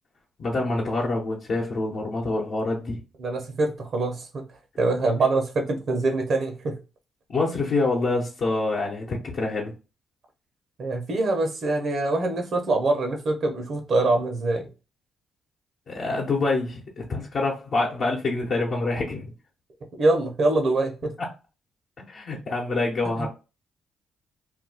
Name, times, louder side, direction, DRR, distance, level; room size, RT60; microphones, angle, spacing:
voice 1, 0.4-3.0 7.3-9.7 15.9-19.3 21.2-21.3 22.1-23.3, left 3 dB, 60° left, 0.9 m, -26 dB
voice 2, 3.2-4.4 4.8-6.8 10.8-14.7 20.0-21.1 23.2-23.3, right 2 dB, 65° right, 1.0 m, -24 dB
2.6 x 2.3 x 3.9 m
supercardioid pair, 65°, 0 cm